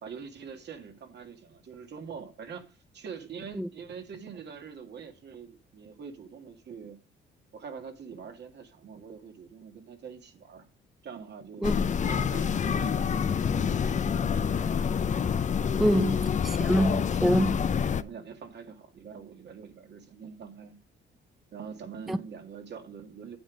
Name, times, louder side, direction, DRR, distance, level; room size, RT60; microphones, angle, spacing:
voice 1, 0.0-7.0 7.5-10.7 11.0-11.7 12.1-14.9 15.9-16.0 17.9-20.8 21.5-23.4, right 6 dB, 60° right, 2.2 m, -44 dB
sound 1, 11.6-18.0, left 7 dB, 35° left, 0.6 m, -27 dB
voice 2, 15.8-16.2 16.4-17.6 22.1-22.2, equal, ahead, 0.5 m, -25 dB
9.4 x 7.7 x 5.0 m
cardioid pair, 90°, 20 cm